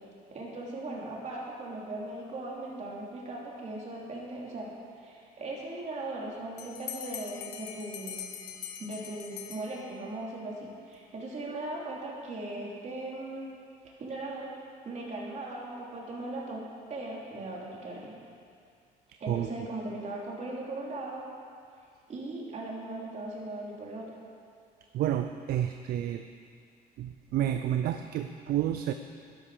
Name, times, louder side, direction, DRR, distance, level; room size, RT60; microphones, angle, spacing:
voice 1, 0.3-4.7 5.0-8.2 8.8-13.5 13.8-14.5 14.8-16.6 16.9-18.1 19.2-21.2 22.1-24.0, right 2 dB, 45° right, -3 dB, 3.1 m, -38 dB
Bell, 6.6-10.2, left 9 dB, 85° left, 1.1 m, -42 dB
voice 2, 24.9-26.2 27.0-28.9, right 11 dB, 65° right, 8 dB, 0.5 m, -30 dB
12.0 x 12.0 x 5.0 m, 2.3 s
cardioid pair, 110°, 17 cm